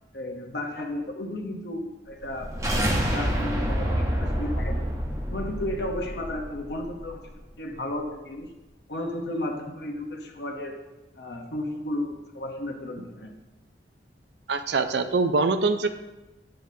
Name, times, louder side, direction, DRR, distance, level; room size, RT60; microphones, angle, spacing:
voice 1, 0.1-4.8 5.3-8.5 8.9-10.8 11.1-13.3, left 1 dB, 65° left, 2 dB, 1.1 m, -34 dB
sound 1, 2.2-7.3, equal, 20° right, 1.0 m, -29 dB
sound 2, 3.5-7.5, equal, ahead, 2.2 m, -32 dB
voice 2, 14.5-16.0, right 3 dB, 70° right, 9 dB, 0.5 m, -24 dB
8.7 x 7.8 x 2.8 m, 1.0 s
head